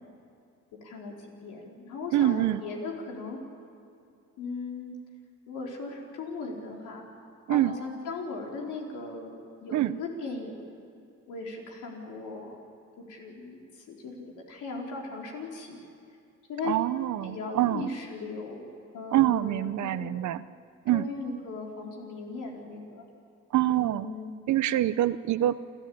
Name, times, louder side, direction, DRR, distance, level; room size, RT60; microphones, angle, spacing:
voice 1, 0.8-3.4 4.4-5.0 5.5-7.0 7.5-9.3 9.6-10.7 11.3-12.6 13.0-13.6 13.9-15.8 16.5-16.7 17.2-18.7 18.9-20.1 20.9-23.0 23.7-24.3, left 3 dB, 90° left, -1 dB, 4.2 m, -38 dB
voice 2, 2.1-2.6 7.5-7.8 9.7-10.0 16.6-17.9 19.1-20.4 20.9-21.1 23.5-24.1 24.5-25.7, right 13 dB, 70° right, 15 dB, 0.8 m, -25 dB
28.5 x 13.0 x 8.6 m, 2.5 s
cardioid pair, 90°, 30 cm